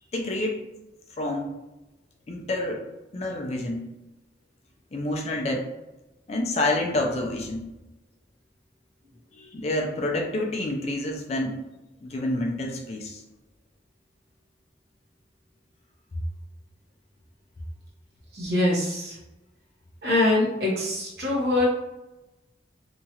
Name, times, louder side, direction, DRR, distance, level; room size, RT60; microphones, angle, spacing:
voice 1, 0.1-0.6 1.2-1.5 2.3-2.8 3.1-3.9 4.9-5.7 6.3-7.7 9.3-11.6 12.0-13.2 16.1-16.2, left 1 dB, 35° left, 1 dB, 0.4 m, -28 dB
voice 2, 18.3-19.1 20.0-21.7, left 2 dB, 60° right, -4 dB, 1.0 m, -23 dB
2.8 x 2.4 x 2.8 m, 0.99 s
head